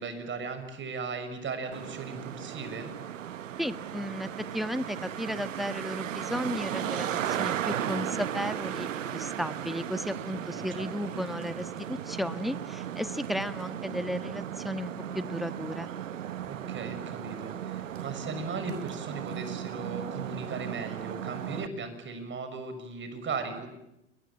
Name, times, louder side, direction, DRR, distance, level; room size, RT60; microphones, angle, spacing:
voice 1, 0.0-2.9 10.5-10.9 16.5-23.7, right 4 dB, 30° right, 9 dB, 6.6 m, -37 dB
Traffic noise roadway noise, 1.7-21.7, right 10 dB, 90° right, 1.1 m, -36 dB
voice 2, 3.6-15.9, equal, ahead, 11 dB, 1.5 m, -34 dB
29.5 x 22.0 x 8.9 m, 0.88 s
hypercardioid pair, 95°, 37 cm